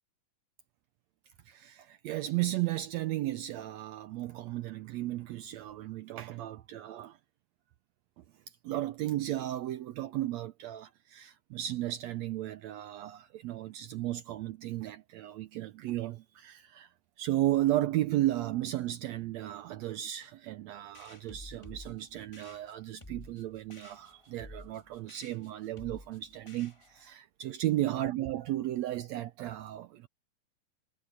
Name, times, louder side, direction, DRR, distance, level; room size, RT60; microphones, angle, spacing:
voice 1, 1.5-7.2 8.2-8.3 8.6-16.9 17.2-30.1, right 14 dB, 80° right, 1.5 m, -34 dB
sound 1, 20.9-27.1, left 1 dB, 20° left, 0.8 m, -51 dB
omnidirectional pair, 3.8 m